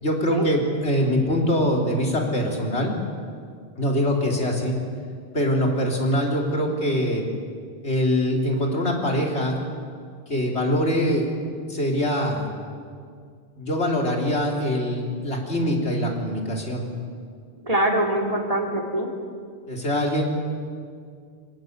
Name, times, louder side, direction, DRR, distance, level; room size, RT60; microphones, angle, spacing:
voice 1, 0.0-2.9 3.8-4.8 5.3-7.2 7.8-9.6 10.3-11.3 11.7-12.5 13.6-16.8 19.7-20.3, equal, 85° left, 0 dB, 3.8 m, -23 dB
voice 2, 17.6-19.1, right 1 dB, 35° right, 0 dB, 3.2 m, -23 dB
27.0 x 18.0 x 8.1 m, 2.2 s
omnidirectional pair, 1.1 m